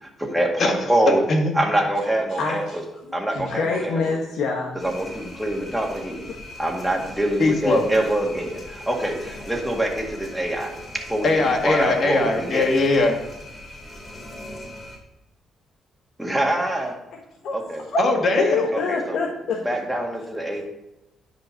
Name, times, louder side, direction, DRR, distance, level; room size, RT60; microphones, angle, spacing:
voice 1, 0.0-1.2 1.5-2.8 3.1-4.1 4.7-6.3 6.6-12.7 16.2-16.9 17.5-17.9 18.7-19.2 19.6-20.6, right 1 dB, 5° right, 0 dB, 2.0 m, -25 dB
voice 2, 1.1-1.5 7.4-7.8 11.2-13.1 17.5-17.6 17.9-18.6, left 2 dB, 50° left, 3 dB, 1.9 m, -20 dB
voice 3, 2.3-2.9 3.3-4.8 18.4-19.6, left 4 dB, 75° left, 0 dB, 1.3 m, -25 dB
sound 1, 4.8-15.0, left 1 dB, 30° left, 2.6 m, -40 dB
10.5 x 5.3 x 5.8 m, 0.94 s
cardioid pair, 90°, 0 cm